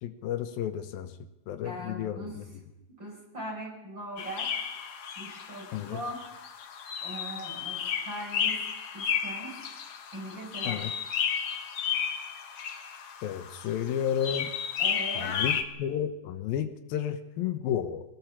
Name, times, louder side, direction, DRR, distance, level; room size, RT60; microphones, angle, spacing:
voice 1, 0.0-1.1 1.5-2.4 5.7-6.0 10.7-10.9 13.2-14.5 15.2-18.0, left 9 dB, 85° left, 9 dB, 2.9 m, -32 dB
voice 2, 1.6-2.4 3.0-4.5 5.2-6.2 7.0-8.6 8.9-9.6 10.1-10.9 14.8-15.4, equal, 30° right, -1 dB, 5.4 m, -40 dB
sound 1, 4.2-15.6, left 7 dB, 50° left, 2.1 m, -33 dB
22.0 x 18.5 x 7.4 m, 0.94 s
omnidirectional pair, 4.1 m